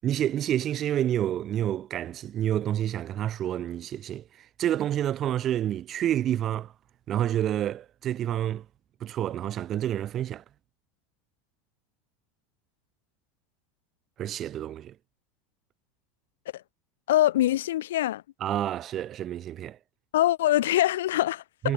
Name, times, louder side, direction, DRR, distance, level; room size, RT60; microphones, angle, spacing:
voice 1, 0.0-6.7 7.1-8.6 9.0-10.4 14.2-14.9 18.4-19.8 21.6-21.7, right 11 dB, 40° right, 7.4 m, -28 dB
voice 2, 17.1-18.2 20.1-21.7, left 14 dB, 75° left, 5.7 m, -23 dB
hypercardioid pair, 85°, 0 cm